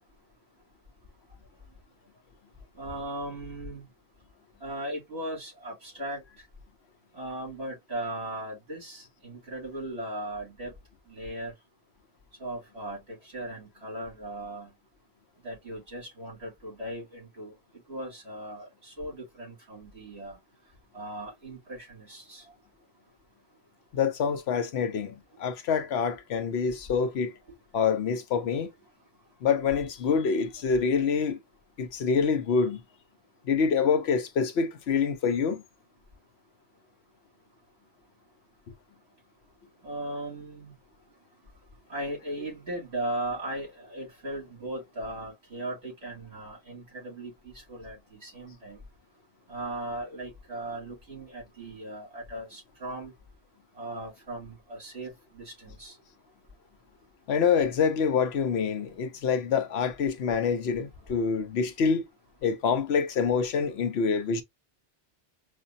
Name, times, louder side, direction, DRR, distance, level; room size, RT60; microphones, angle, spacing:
voice 1, 2.8-3.9 4.6-6.2 7.1-10.7 11.1-11.5 12.4-14.7 15.4-17.5 17.9-20.4 20.9-22.4 39.8-40.7 41.9-48.8 49.5-53.1 53.8-55.9, right 1 dB, 65° right, 2.9 m, -38 dB
voice 2, 23.9-27.3 27.7-28.7 29.4-31.4 31.8-32.8 33.5-35.6 57.3-62.0 62.4-64.4, left 6 dB, 70° left, 0.9 m, -26 dB
4.9 x 2.2 x 2.6 m
omnidirectional pair, 1.2 m